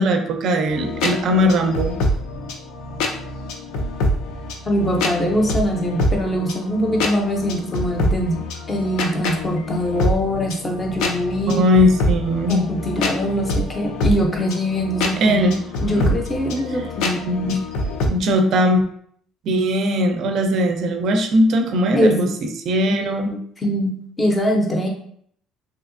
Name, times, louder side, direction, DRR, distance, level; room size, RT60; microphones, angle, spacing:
voice 1, 0.0-1.9 11.5-12.6 15.2-15.5 15.9-16.1 17.3-17.6 18.0-18.8 19.4-22.3 22.7-23.3, equal, 50° right, 5 dB, 0.4 m, -19 dB
sound 1, 0.7-18.1, left 1 dB, 80° left, 0.5 m, -26 dB
voice 2, 4.7-11.6 12.5-15.4 15.8-17.2 17.5-17.6 21.9-22.3 22.9-24.9, equal, 15° left, 1 dB, 0.5 m, -23 dB
3.3 x 2.7 x 2.5 m, 0.64 s
cardioid pair, 170°, 0 cm